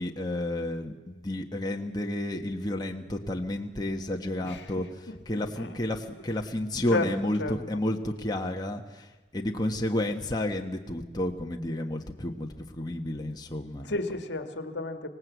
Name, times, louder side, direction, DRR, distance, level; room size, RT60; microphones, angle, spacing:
voice 1, 0.0-4.8 5.3-13.9, left 1 dB, 20° left, 2 dB, 1.3 m, -31 dB
voice 2, 4.4-5.7 6.9-7.1 7.4-7.5 13.8-15.1, left 2 dB, 70° left, 7 dB, 1.6 m, -33 dB
25.5 x 18.0 x 8.2 m, 1.2 s
head